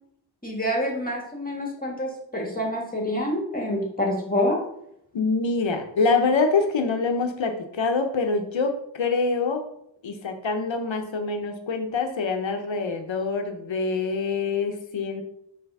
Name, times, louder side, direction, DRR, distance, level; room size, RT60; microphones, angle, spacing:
voice 1, 0.4-4.6, left 1 dB, 20° left, -1 dB, 1.8 m, -27 dB
voice 2, 5.1-9.6 10.0-15.2, left 4 dB, 80° left, 5 dB, 1.0 m, -25 dB
5.7 x 3.3 x 5.5 m, 0.74 s
wide cardioid pair, 75°, 45 cm